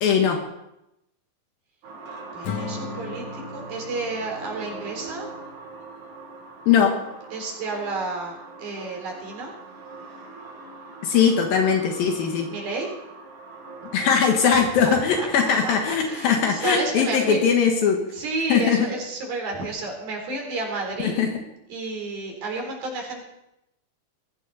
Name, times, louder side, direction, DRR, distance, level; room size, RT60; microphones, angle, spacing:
voice 1, 0.0-0.4 6.7-6.9 11.0-12.5 13.9-18.0 18.5-18.8 21.0-21.3, left 7 dB, 80° left, 2 dB, 3.3 m, -20 dB
sound 1, 1.8-16.8, right 3 dB, 60° right, 3.8 m, -42 dB
voice 2, 2.3-5.3 7.3-9.5 12.5-12.9 14.5-17.4 18.1-21.2 21.7-23.2, right 2 dB, 80° right, 1 dB, 5.8 m, -31 dB
Acoustic guitar / Strum, 2.4-5.8, left 5 dB, 60° left, 2.7 m, -37 dB
20.5 x 16.0 x 4.2 m, 0.86 s
omnidirectional pair, 4.2 m